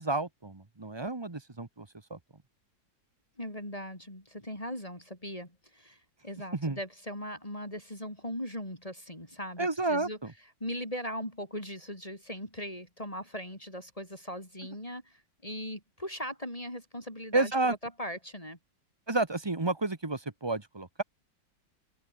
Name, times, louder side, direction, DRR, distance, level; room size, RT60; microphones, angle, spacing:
voice 1, 0.0-2.2 6.5-6.8 9.6-10.3 17.3-17.7 19.1-21.0, right 2 dB, 15° right, 1.0 m, -31 dB
voice 2, 3.4-10.2 10.6-18.6, equal, 15° left, 5.9 m, -39 dB
omnidirectional pair, 2.1 m